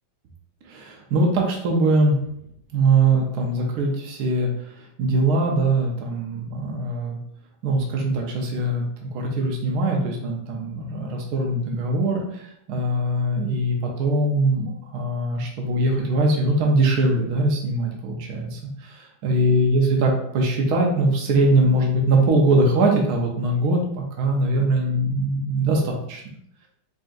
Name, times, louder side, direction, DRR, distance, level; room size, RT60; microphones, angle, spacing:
voice 1, 0.7-2.2 2.7-7.2 7.6-26.3, right 2 dB, 65° right, 0 dB, 1.1 m, -22 dB
5.1 x 2.8 x 2.4 m, 0.73 s
omnidirectional pair, 2.1 m